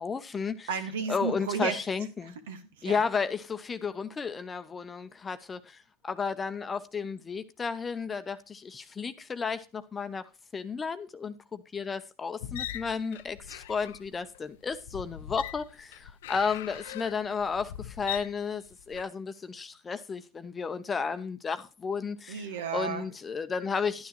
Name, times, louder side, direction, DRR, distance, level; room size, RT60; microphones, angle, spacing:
voice 1, 0.0-0.5 1.1-2.1 2.8-3.4 3.7-5.0 5.3-5.6 6.2-8.3 9.0-9.1 9.4-9.6 9.9-10.2 10.5-11.0 11.2-11.3 11.7-13.3 13.7-14.2 14.6-15.6 16.3-17.6 18.0-18.6 18.9-19.2 19.9-20.2 20.6-21.6 21.8-22.1 22.7-23.9, left 5 dB, 20° left, 0.7 m, -31 dB
voice 2, 0.7-1.8 2.5-3.0 22.3-23.1, right 6 dB, 90° right, 1.6 m, -33 dB
sound 1, 12.4-19.0, left 12 dB, 85° left, 0.6 m, -41 dB
11.0 x 10.0 x 2.9 m
supercardioid pair, 115°, 0 cm